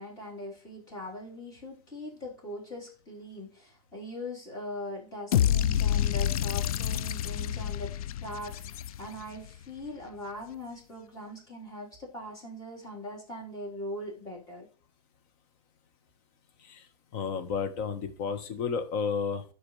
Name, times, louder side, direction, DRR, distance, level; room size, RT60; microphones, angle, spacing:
voice 1, 0.0-14.7, left 1 dB, 20° left, -4 dB, 4.1 m, -41 dB
sound 1, 5.3-9.4, left 10 dB, 65° left, 0.5 m, -28 dB
voice 2, 16.6-19.4, left 6 dB, 40° left, 9 dB, 1.4 m, -32 dB
12.5 x 4.9 x 3.3 m, 0.38 s
hypercardioid pair, 140°, 20 cm